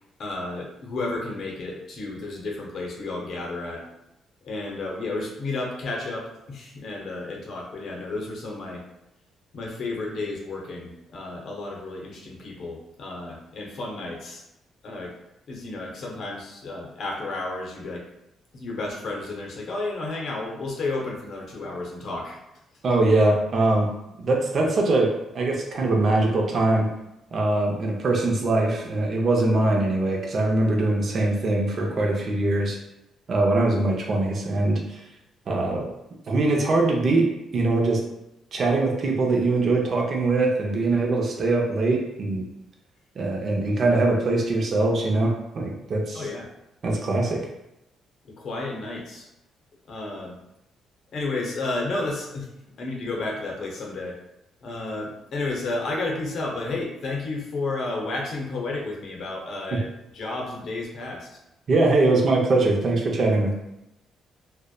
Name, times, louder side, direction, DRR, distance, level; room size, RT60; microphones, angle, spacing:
voice 1, 0.2-3.8 4.4-8.8 9.5-14.4 14.8-15.1 15.5-18.0 18.5-22.4 46.1-46.5 48.2-49.3 49.9-50.4 51.1-52.5 52.8-54.2 54.6-59.9 60.1-61.4, left 2 dB, 65° left, -1 dB, 0.6 m, -32 dB
voice 2, 22.8-23.9 24.2-26.9 27.3-32.8 33.3-35.0 35.5-35.9 36.3-37.3 37.5-38.0 38.5-42.4 43.2-46.2 46.8-47.4 61.7-63.5, right 2 dB, 50° right, 0 dB, 0.5 m, -22 dB
2.6 x 2.1 x 2.2 m, 0.87 s
cardioid pair, 90°, 0 cm